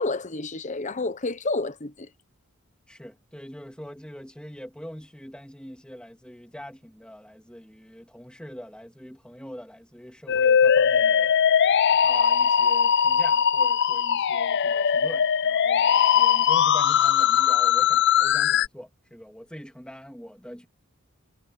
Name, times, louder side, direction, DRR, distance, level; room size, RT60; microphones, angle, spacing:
voice 1, 0.0-2.1, left 3 dB, 35° left, 0.9 m, -29 dB
voice 2, 2.9-20.7, equal, 5° left, 2.8 m, -43 dB
Musical instrument, 10.3-18.7, left 8 dB, 55° left, 0.5 m, -20 dB
head